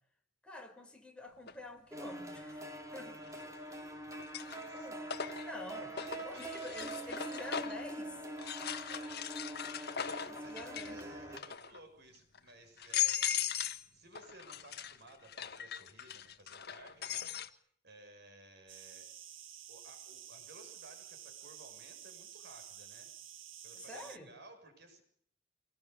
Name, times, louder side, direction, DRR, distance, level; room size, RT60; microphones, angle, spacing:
voice 1, 0.4-3.2 4.7-5.0 5.4-5.9 6.2-8.1 10.2-11.0 23.7-24.3, left 1 dB, 5° left, 2 dB, 5.5 m, -48 dB
sound 1, 1.5-1.6 3.3-3.7 4.1-7.9 8.4-11.0 11.3-11.8 12.3-12.4 12.8-13.9 14.1-17.5, left 9 dB, 55° left, 1.7 m, -39 dB
sound 2, 1.9-11.4, right 1 dB, 15° right, 4.9 m, -44 dB
voice 2, 3.2-4.9 5.7-7.5 8.4-9.5 9.9-13.5 13.9-17.3 17.8-19.1 19.7-23.1 23.6-25.0, right 2 dB, 60° right, 6 dB, 7.4 m, -57 dB
sound 3, 18.7-24.2, right 10 dB, 80° right, 1.6 m, -51 dB
26.5 x 20.0 x 8.3 m, 0.65 s
head